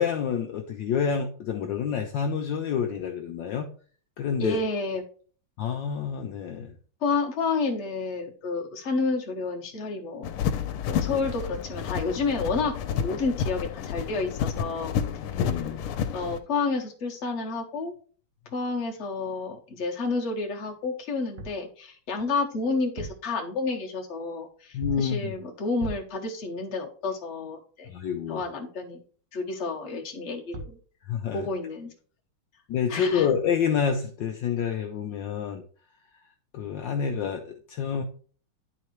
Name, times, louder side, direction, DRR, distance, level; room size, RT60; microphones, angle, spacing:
voice 1, 0.0-3.7 4.2-4.6 5.6-6.7 15.2-15.8 24.7-25.3 27.8-28.4 31.0-31.5 32.7-35.6 36.5-38.0, left 7 dB, 70° left, 3 dB, 1.2 m, -28 dB
voice 2, 4.4-5.0 7.0-10.3 10.9-14.9 15.4-15.5 16.1-17.9 18.5-27.9 28.3-29.0 29.3-30.8 31.3-31.9 32.9-33.3, left 3 dB, 40° left, 0 dB, 1.2 m, -30 dB
sound 1, 10.2-16.4, left 7 dB, 90° left, 1.6 m, -30 dB
sound 2, 21.4-21.7 22.8-23.4 24.8-25.2 25.8-26.2 30.2-30.3 30.5-30.9, right 2 dB, 60° right, 1.5 m, -38 dB
11.0 x 4.0 x 3.1 m, 0.43 s
omnidirectional pair, 2.3 m